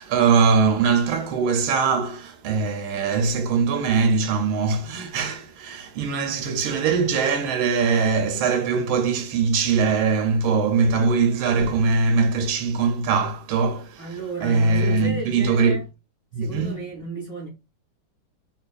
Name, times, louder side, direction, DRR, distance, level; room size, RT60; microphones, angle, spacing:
voice 1, 0.0-14.1 14.4-15.8 16.3-16.8, right 5 dB, 80° right, 1.4 m, -21 dB
voice 2, 14.0-15.9 16.4-17.5, right 3 dB, 30° left, 1.7 m, -33 dB
3.9 x 2.9 x 2.3 m
omnidirectional pair, 2.3 m